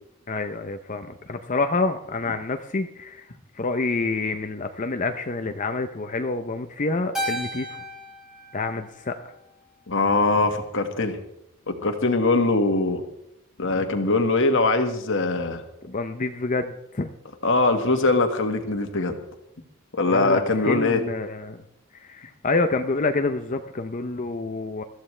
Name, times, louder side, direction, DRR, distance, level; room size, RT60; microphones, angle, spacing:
voice 1, 0.3-3.3 3.5-7.8 8.5-9.3 15.8-17.1 20.1-21.6 21.9-24.8, left 3 dB, 35° left, 7 dB, 0.6 m, -27 dB
Keyboard (musical), 7.1-9.7, equal, ahead, 2.4 m, -34 dB
voice 2, 9.9-11.2 11.7-13.0 13.6-15.6 17.4-19.2 19.9-21.0, left 3 dB, 55° left, 6 dB, 1.6 m, -22 dB
21.5 x 14.0 x 3.3 m, 0.81 s
head